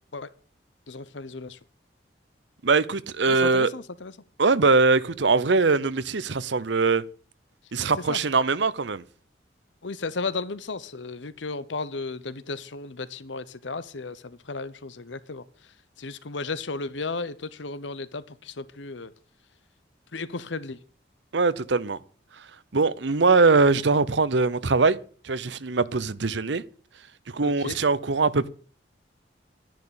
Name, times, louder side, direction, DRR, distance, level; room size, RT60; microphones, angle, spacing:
voice 1, 0.9-1.6 3.3-4.1 8.1-8.2 9.8-15.4 16.0-19.1 20.1-20.8 27.4-27.8, left 3 dB, 80° left, 0.9 m, -34 dB
voice 2, 2.6-3.7 4.4-7.0 7.7-9.0 21.3-22.0 22.7-25.0 25.2-26.6 27.3-28.5, right 4 dB, 75° right, 0.8 m, -22 dB
11.0 x 10.5 x 8.7 m
head